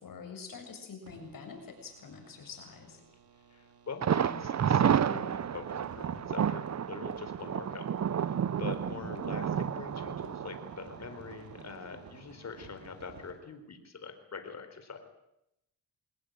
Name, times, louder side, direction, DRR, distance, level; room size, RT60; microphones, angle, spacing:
voice 1, 0.0-3.0 8.9-9.1, left 5 dB, 60° left, 4 dB, 7.3 m, -46 dB
sound 1, 1.0-13.3, right 4 dB, 70° right, 4.8 m, -55 dB
voice 2, 3.5-7.9 8.2-15.0, left 5 dB, 45° left, 7 dB, 4.2 m, -44 dB
Thunder, 4.0-11.8 12.1-12.2 12.6-12.7, right 8 dB, 45° right, 0.9 m, -31 dB
22.5 x 19.5 x 9.2 m, 0.83 s
cardioid pair, 85°, 37 cm